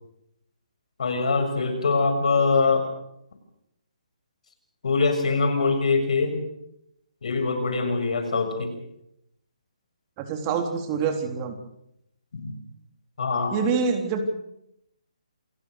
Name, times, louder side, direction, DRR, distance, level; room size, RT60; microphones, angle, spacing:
voice 1, 1.0-2.9 4.8-6.4 7.2-8.7 12.3-12.5 13.2-13.5, left 4 dB, 65° left, 7 dB, 7.0 m, -23 dB
voice 2, 10.2-11.6 13.5-14.2, right 5 dB, 25° right, 5 dB, 3.7 m, -26 dB
28.0 x 18.0 x 6.7 m, 0.79 s
hypercardioid pair, 150°, 4 cm